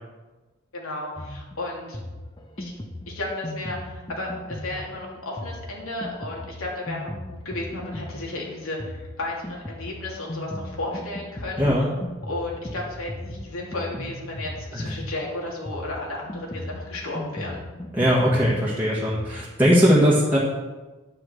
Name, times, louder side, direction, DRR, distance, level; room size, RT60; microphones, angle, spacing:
voice 1, 0.7-2.0 2.6-2.7 3.1-7.1 7.4-11.6 12.3-17.6, left 2 dB, 85° left, -3 dB, 2.9 m, -33 dB
Drum kit, 1.2-19.4, left 1 dB, 20° left, 0.8 m, -37 dB
voice 2, 17.9-20.4, equal, 10° right, -7 dB, 1.5 m, -20 dB
9.9 x 8.9 x 4.6 m, 1.2 s
head